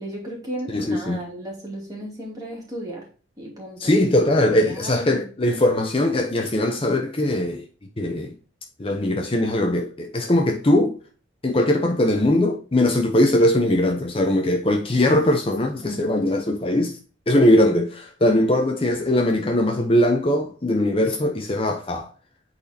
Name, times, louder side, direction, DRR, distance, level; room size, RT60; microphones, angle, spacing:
voice 1, 0.0-3.1 3.4-4.0 4.6-5.3 15.8-16.0, right 1 dB, 20° right, 2.5 m, -34 dB
voice 2, 0.7-1.2 3.8-7.6 8.0-8.3 8.8-11.0 11.4-17.0 17.3-22.1, left 1 dB, 30° left, 0.6 m, -20 dB
8.7 x 4.1 x 2.7 m
head